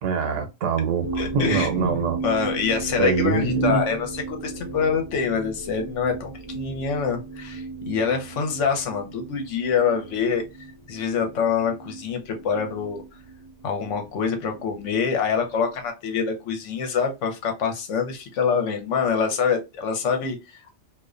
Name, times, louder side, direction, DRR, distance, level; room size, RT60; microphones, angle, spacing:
voice 1, 0.0-2.2 3.0-3.8, right 5 dB, 90° right, 1.0 m, -24 dB
sound 1, 1.0-15.9, right 3 dB, 35° left, 0.9 m, -36 dB
voice 2, 1.2-10.4 10.9-13.0 13.6-20.7, left 6 dB, 75° left, 1.0 m, -25 dB
2.4 x 2.1 x 2.4 m
omnidirectional pair, 1.3 m